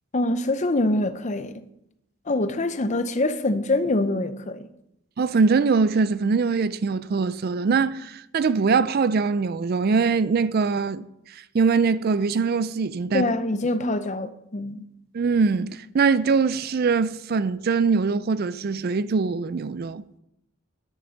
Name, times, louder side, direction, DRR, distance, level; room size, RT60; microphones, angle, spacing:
voice 1, 0.1-1.6 2.3-4.7 13.1-14.8, left 2 dB, 35° left, 0.6 m, -24 dB
voice 2, 5.2-11.0 11.5-13.3 15.1-20.0, right 4 dB, 45° right, 0.4 m, -22 dB
10.5 x 6.7 x 6.3 m
head